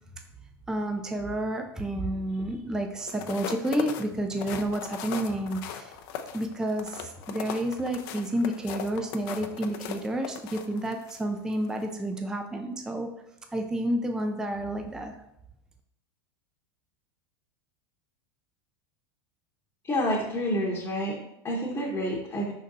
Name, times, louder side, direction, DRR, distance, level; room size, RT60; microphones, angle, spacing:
voice 1, 0.7-6.0 6.3-13.1 13.5-15.1, right 1 dB, 5° right, 4 dB, 0.4 m, -30 dB
sound 1, 3.0-11.2 11.6-11.8, left 9 dB, 55° left, 0.5 m, -38 dB
voice 2, 19.8-22.5, equal, 20° left, -3 dB, 0.9 m, -29 dB
5.0 x 4.0 x 2.6 m, 0.81 s
hypercardioid pair, 90°, 14 cm